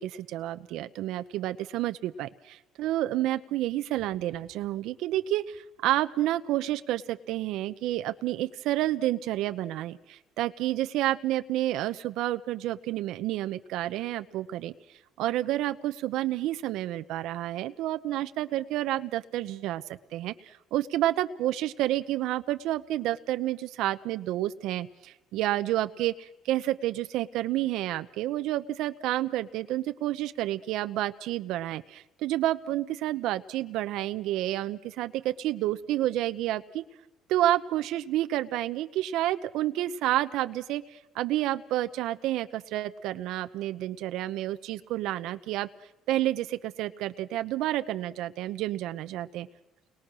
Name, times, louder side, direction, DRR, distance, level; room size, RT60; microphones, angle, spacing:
voice 1, 0.0-14.7 15.2-36.8 37.3-45.7 46.1-49.5, right 14 dB, 80° right, 10 dB, 0.8 m, -30 dB
29.5 x 21.5 x 6.3 m, 0.96 s
cardioid pair, 140°, 0 cm